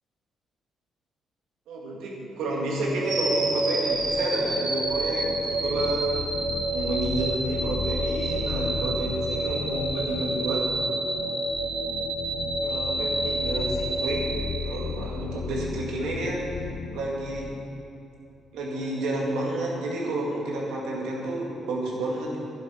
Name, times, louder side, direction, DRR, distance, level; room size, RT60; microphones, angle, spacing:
voice 1, 1.7-6.3 6.7-10.6 12.6-14.3 14.6-16.4 16.9-17.5 18.5-22.4, right 2 dB, 90° right, -3 dB, 2.2 m, -30 dB
sound 1, 3.0-15.2, right 2 dB, 55° right, 2.3 m, -28 dB
sound 2, 3.9-17.8, left 7 dB, 75° left, 0.4 m, -36 dB
11.0 x 7.4 x 5.8 m, 2.8 s
cardioid pair, 90°, 0 cm